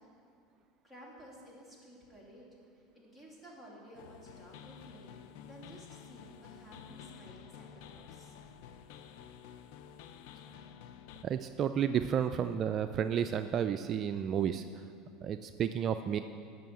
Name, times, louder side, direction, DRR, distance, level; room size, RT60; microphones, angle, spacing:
voice 1, 0.8-2.5 2.7-5.2 5.5-8.3, right 1 dB, 5° left, -4 dB, 2.9 m, -54 dB
sound 1, 3.9-11.3, left 8 dB, 70° left, 0.5 m, -51 dB
voice 2, 11.2-14.6 15.2-16.2, right 8 dB, 40° right, 9 dB, 0.3 m, -31 dB
9.1 x 6.2 x 7.7 m, 2.3 s
supercardioid pair, 100°, 0 cm